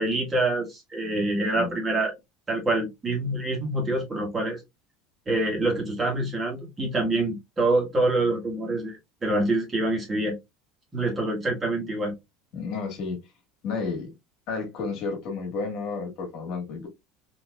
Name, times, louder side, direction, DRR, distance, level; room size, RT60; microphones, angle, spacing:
voice 1, 0.0-2.1 2.5-4.6 5.3-10.3 10.9-12.1, right 2 dB, 20° right, 1.5 m, -26 dB
voice 2, 1.4-1.8 12.5-13.2 13.6-14.1 14.5-16.9, left 4 dB, 55° left, 1.8 m, -31 dB
4.0 x 2.9 x 2.4 m
supercardioid pair, 130°, 0 cm